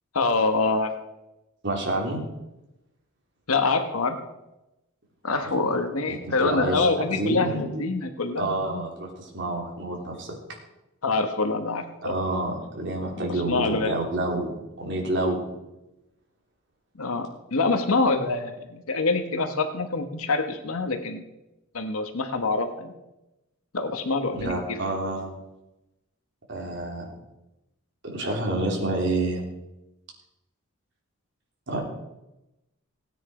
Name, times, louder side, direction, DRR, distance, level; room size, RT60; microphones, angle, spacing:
voice 1, 0.1-0.9 3.5-4.2 5.2-8.8 11.0-12.1 13.5-14.0 17.0-21.2 21.7-22.9 23.7-24.8, left 3 dB, 85° left, 7 dB, 1.2 m, -25 dB
voice 2, 1.6-2.2 5.3-5.5 6.1-7.8 8.4-10.4 12.0-14.5 14.8-15.4 24.3-25.3 26.5-27.1 28.0-29.4 31.7-31.8, right 2 dB, 55° right, -1 dB, 3.4 m, -28 dB
17.0 x 9.3 x 5.0 m, 0.97 s
head